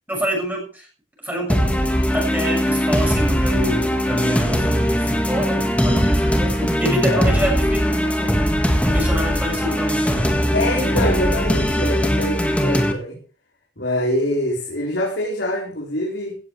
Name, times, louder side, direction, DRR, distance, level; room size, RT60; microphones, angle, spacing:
voice 1, 0.1-0.9 1.2-8.4 8.8-10.4, equal, 10° right, 0 dB, 6.7 m, -27 dB
sound 1, 1.5-12.9, equal, 10° left, 1.9 m, -20 dB
voice 2, 7.0-7.4 10.5-13.2 13.8-16.4, left 1 dB, 75° left, -3 dB, 4.5 m, -25 dB
16.5 x 14.5 x 3.4 m, 0.38 s
head